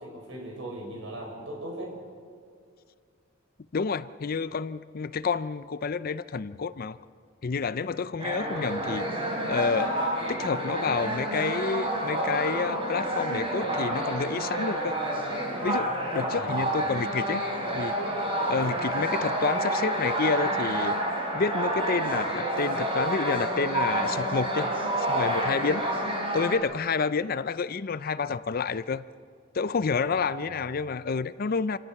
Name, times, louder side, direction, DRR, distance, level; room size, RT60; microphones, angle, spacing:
voice 1, 0.0-1.9 16.2-16.7 18.5-18.7 30.1-30.7, right 1 dB, 70° right, 0 dB, 6.3 m, -39 dB
voice 2, 3.7-7.0 7.4-9.1 9.5-10.0 10.3-15.0 15.6-17.4 17.7-17.9 18.5-21.0 21.3-24.7 25.0-25.9 26.3-29.1 29.5-31.8, left 5 dB, 45° left, 15 dB, 0.5 m, -29 dB
sound 1, 8.2-26.6, right 1 dB, 30° right, 4.2 m, -29 dB
27.5 x 17.5 x 5.9 m, 2.1 s
head